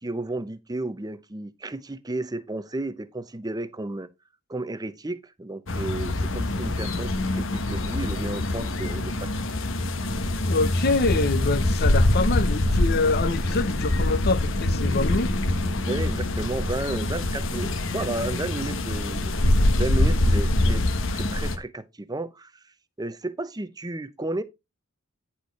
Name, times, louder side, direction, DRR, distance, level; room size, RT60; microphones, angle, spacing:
voice 1, 0.0-4.1 4.5-9.5 15.8-19.3 19.8-20.8 21.1-22.5 23.0-24.4, right 2 dB, 20° right, 0.7 m, -33 dB
sound 1, 5.7-21.6, left 1 dB, 65° left, 1.1 m, -24 dB
voice 2, 10.5-15.4, left 3 dB, 50° left, 0.8 m, -25 dB
10.0 x 4.3 x 4.5 m
head